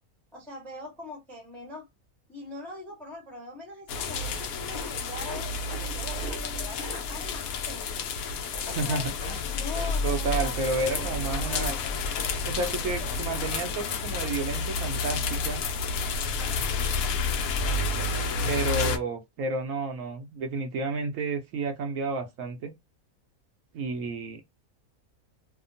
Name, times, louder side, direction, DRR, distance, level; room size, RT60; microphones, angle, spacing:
voice 1, 0.3-1.9 2.3-5.5 5.8-8.1 8.6-9.1 9.4-10.7 11.3-11.8 12.7-13.5 16.2-16.6 17.6-18.8, left 1 dB, ahead, 0.7 m, -42 dB
sound 1, 3.9-19.0, left 4 dB, 75° left, 1.0 m, -30 dB
sound 2, 4.7-5.9 6.1-6.4 6.8-7.0 8.5-8.9 9.2-9.4 9.7-10.0 10.2-10.6 10.8-11.7 12.0-12.4, left 2 dB, 30° left, 1.2 m, -42 dB
voice 2, 8.8-9.1 10.0-11.8 12.4-15.6 18.4-22.7 23.7-24.4, right 3 dB, 70° right, 0.9 m, -31 dB
2.8 x 2.1 x 2.5 m
omnidirectional pair, 1.5 m